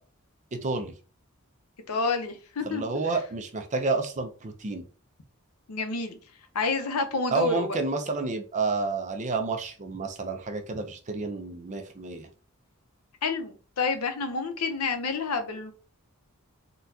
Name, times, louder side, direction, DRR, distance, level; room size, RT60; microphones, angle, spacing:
voice 1, 0.5-0.9 2.7-4.8 7.3-12.3, right 3 dB, 35° right, 6 dB, 0.5 m, -30 dB
voice 2, 1.9-2.8 5.7-6.2 6.5-7.7 13.2-15.7, left 4 dB, 85° left, 7 dB, 0.7 m, -29 dB
3.8 x 2.2 x 2.7 m, 0.37 s
head